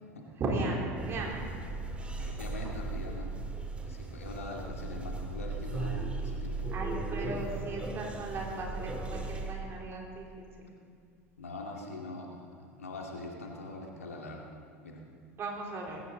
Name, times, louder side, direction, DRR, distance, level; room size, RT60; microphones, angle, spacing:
voice 1, 0.4-1.4 6.7-10.3 10.6-10.7 15.4-16.0, right 2 dB, 35° right, -2 dB, 4.0 m, -36 dB
sound 1, 1.0-9.5, right 3 dB, 15° right, 2.1 m, -37 dB
voice 2, 2.2-3.3 3.9-6.7 11.4-14.5 14.8-15.0, left 2 dB, 80° left, 0 dB, 2.3 m, -43 dB
20.0 x 16.5 x 4.0 m, 2.2 s
figure-of-eight pair, 75°, 8 cm